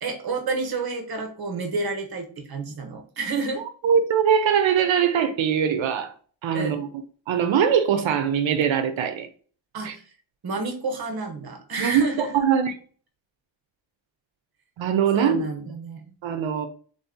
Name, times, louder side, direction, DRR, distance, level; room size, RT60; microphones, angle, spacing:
voice 1, 0.0-3.6 6.5-6.8 9.7-10.1 10.4-12.4 15.1-16.1, right 3 dB, 55° right, 0.9 m, -30 dB
voice 2, 3.8-6.1 6.4-6.9 7.3-9.3 9.8-9.9 11.8-12.7 14.8-15.4 16.2-16.7, right 8 dB, 85° right, 0.6 m, -22 dB
3.6 x 2.7 x 3.5 m
wide cardioid pair, 170°, 45 cm